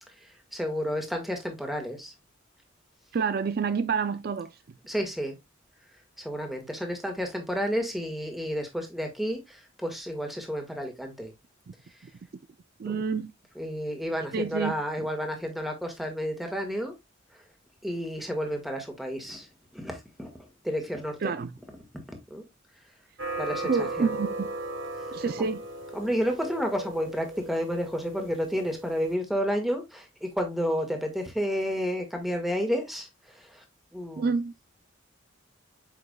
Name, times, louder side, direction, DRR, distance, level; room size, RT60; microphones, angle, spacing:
voice 1, 0.2-2.1 4.9-5.3 6.2-11.3 12.8-12.9 13.5-16.9 17.8-19.5 19.7-21.3 21.9-22.4 23.4-24.1 25.2-25.5 25.9-33.6 33.9-34.3, equal, ahead, 1.7 m, -31 dB
voice 2, 3.1-4.6 12.8-13.3 14.3-14.7 21.2-21.5 23.6-24.5 25.1-25.6 34.2-34.5, right 5 dB, 50° right, 0.4 m, -28 dB
sound 1, 23.2-29.1, right 2 dB, 65° right, 1.3 m, -37 dB
8.0 x 5.7 x 2.2 m
head